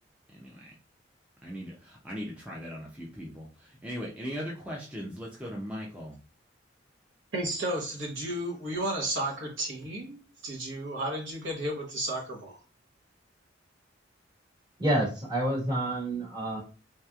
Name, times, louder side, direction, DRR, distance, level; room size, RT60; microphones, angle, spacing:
voice 1, 0.3-0.6 1.4-6.2, equal, 5° right, -3 dB, 0.5 m, -39 dB
voice 2, 7.3-12.6, right 1 dB, 75° right, -2 dB, 1.0 m, -33 dB
voice 3, 14.8-16.6, right 1 dB, 25° right, -4 dB, 1.3 m, -28 dB
3.2 x 2.9 x 2.3 m, 0.34 s
head